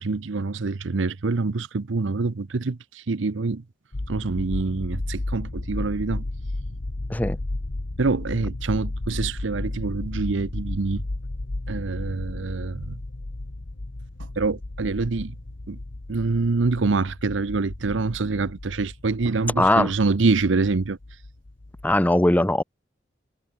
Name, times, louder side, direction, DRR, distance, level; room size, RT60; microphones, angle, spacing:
voice 1, 0.0-3.6 4.1-6.2 8.0-11.0 11.7-13.0 14.2-15.4 15.7-15.8 16.1-21.0, right 3 dB, 75° right, 0.7 m, -25 dB
sound 1, 3.9-22.0, left 2 dB, 80° left, 1.3 m, -34 dB
voice 2, 19.6-19.9 21.8-22.6, left 1 dB, 10° left, 0.6 m, -19 dB
head